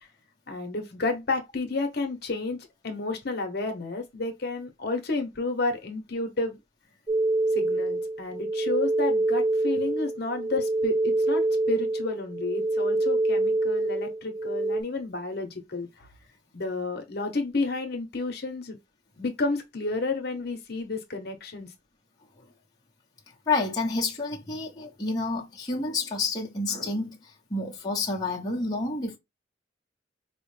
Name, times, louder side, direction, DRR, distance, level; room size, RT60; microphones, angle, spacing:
voice 1, 0.5-6.6 7.5-16.1 16.5-18.8 19.2-21.7, left 3 dB, 60° left, 0.9 m, -31 dB
sound 1, 7.1-14.8, right 2 dB, 20° right, 0.6 m, -26 dB
voice 2, 23.5-29.2, left 3 dB, 20° left, 0.9 m, -29 dB
4.8 x 2.1 x 3.2 m
head